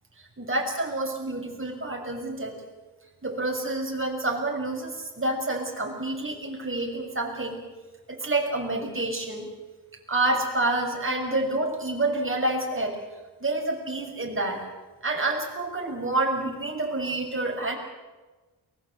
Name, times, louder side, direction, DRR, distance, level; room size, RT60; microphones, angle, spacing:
voice 1, 0.4-2.6 3.2-7.6 8.1-9.5 10.1-13.0 13.4-14.6 15.0-17.8, right 2 dB, 30° right, 2 dB, 6.4 m, -28 dB
23.5 x 21.0 x 7.9 m, 1.2 s
wide cardioid pair, 85°, 39 cm